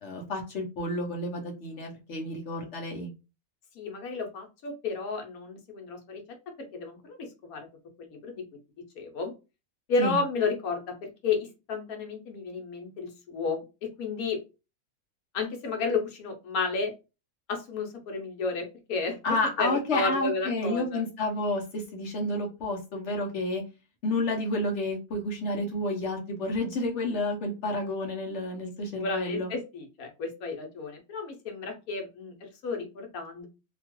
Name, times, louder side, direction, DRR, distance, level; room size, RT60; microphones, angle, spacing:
voice 1, 0.0-3.1 10.0-10.2 19.2-23.6 24.0-29.5, left 1 dB, 55° left, 1 dB, 1.0 m, -30 dB
voice 2, 3.8-6.2 6.7-7.7 8.0-8.4 9.0-9.3 9.9-13.6 14.0-14.4 15.3-16.9 17.5-19.2 19.6-21.0 29.0-33.5, left 4 dB, 75° left, 3 dB, 1.2 m, -32 dB
2.9 x 2.3 x 2.9 m, 0.29 s
omnidirectional pair, 1.5 m